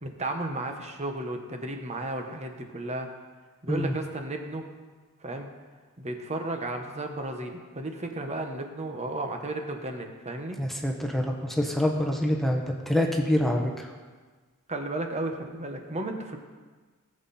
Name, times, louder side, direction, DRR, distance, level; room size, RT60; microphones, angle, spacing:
voice 1, 0.0-3.1 3.6-4.7 5.2-5.5 6.0-10.6 14.7-16.4, right 2 dB, 30° right, 4 dB, 1.3 m, -33 dB
voice 2, 10.6-13.9, left 1 dB, ahead, 1 dB, 1.1 m, -26 dB
18.5 x 7.7 x 4.3 m, 1.4 s
head